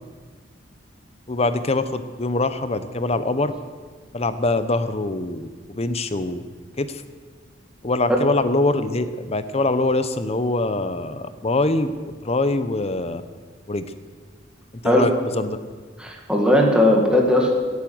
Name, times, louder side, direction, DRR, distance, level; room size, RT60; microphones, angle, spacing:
voice 1, 1.3-3.5 4.1-6.4 6.8-7.0 7.8-11.9 12.2-13.2 13.7-13.9 14.7-15.6, left 2 dB, 35° left, 11 dB, 0.8 m, -23 dB
voice 2, 16.0-17.5, left 1 dB, 5° right, -1 dB, 2.1 m, -17 dB
17.0 x 8.6 x 7.8 m, 1.5 s
head